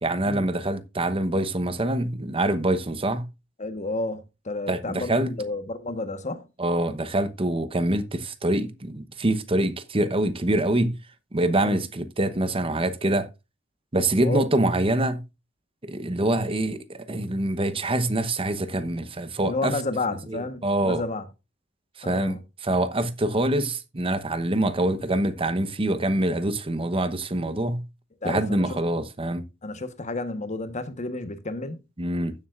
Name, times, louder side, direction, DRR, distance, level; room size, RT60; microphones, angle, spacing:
voice 1, 0.0-3.3 4.7-5.3 6.6-11.0 11.3-13.3 13.9-15.2 15.8-19.8 20.1-21.0 22.0-27.9 28.2-29.4 32.0-32.3, right 1 dB, 30° right, 0.9 m, -25 dB
voice 2, 3.6-6.5 11.6-11.8 14.2-14.4 19.4-21.3 22.0-22.4 28.2-28.6 29.6-31.8, left 2 dB, 40° left, 1.2 m, -31 dB
15.5 x 7.2 x 2.5 m
head